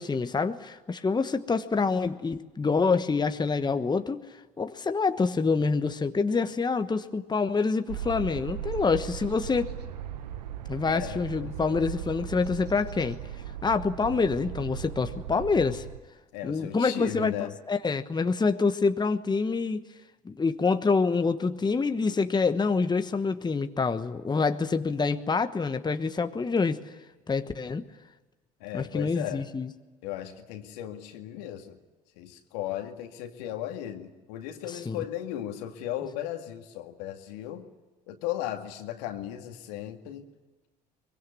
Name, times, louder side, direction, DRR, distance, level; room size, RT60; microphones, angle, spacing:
voice 1, 0.0-4.2 4.6-9.7 10.7-13.2 13.6-15.9 16.4-19.8 20.2-26.9 27.3-27.8 28.7-29.7 34.7-35.0, left 4 dB, 20° left, 9 dB, 1.2 m, -26 dB
sound 1, 7.9-16.0, right 9 dB, 85° right, 1.0 m, -38 dB
voice 2, 10.8-11.8 16.3-17.5 28.6-29.5 30.0-31.8 32.2-37.6 38.1-40.2, left 12 dB, 75° left, 5 dB, 2.2 m, -36 dB
23.5 x 22.0 x 9.5 m, 1.2 s
hypercardioid pair, 60°, 20 cm